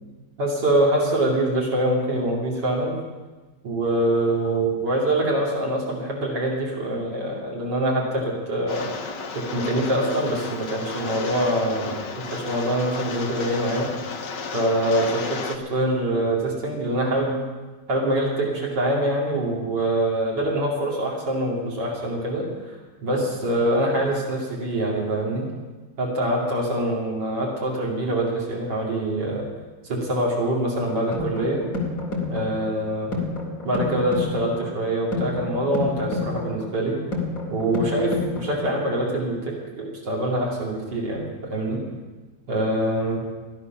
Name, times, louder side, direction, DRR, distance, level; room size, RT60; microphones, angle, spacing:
voice 1, 0.4-3.0 3.6-8.9 9.3-13.9 14.5-17.4 17.9-25.5 26.0-29.5 29.8-31.7 32.3-33.1 33.6-37.0 37.5-41.8 42.5-43.2, right 1 dB, 75° right, -3 dB, 3.1 m, -24 dB
Rain, 8.7-15.6, left 4 dB, 80° left, 1.7 m, -33 dB
sound 1, 30.9-38.9, left 3 dB, 55° left, 2.9 m, -30 dB
16.5 x 11.5 x 6.0 m, 1.3 s
omnidirectional pair, 1.9 m